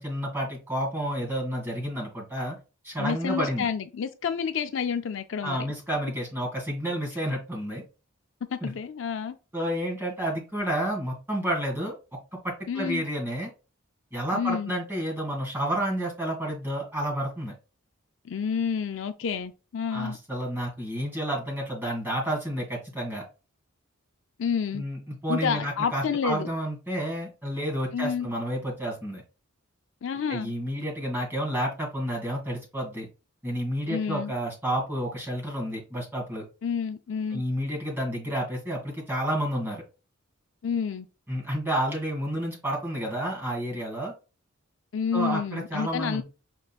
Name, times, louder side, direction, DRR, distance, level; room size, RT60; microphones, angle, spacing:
voice 1, 0.0-2.6 2.8-3.7 5.4-7.8 8.6-8.7 9.5-12.0 12.4-13.5 14.1-17.5 19.9-23.2 24.7-29.2 30.3-33.1 33.4-36.4 37.3-39.8 41.3-44.1 45.1-46.2, right 1 dB, 10° right, 2.1 m, -30 dB
voice 2, 3.0-5.6 8.5-9.4 12.7-13.0 14.3-14.7 18.2-20.2 24.4-24.8 25.3-26.5 27.9-28.3 30.0-30.5 33.9-34.3 36.6-37.4 40.6-41.1 44.9-46.2, left 6 dB, 60° left, 0.4 m, -29 dB
5.4 x 3.7 x 2.4 m
head